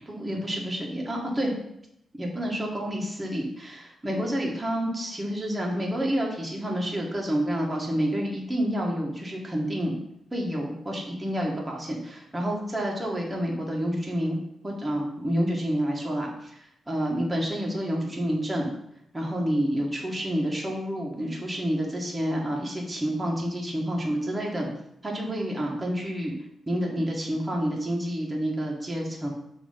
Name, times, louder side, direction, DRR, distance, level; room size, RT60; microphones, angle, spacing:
voice 1, 0.1-1.5 2.2-9.9 10.3-14.4 14.6-16.3 16.9-18.7 19.1-24.7 25.0-26.3 26.7-29.3, equal, 15° right, -2 dB, 1.6 m, -29 dB
6.0 x 3.1 x 5.7 m, 0.77 s
cardioid pair, 85°, 0 cm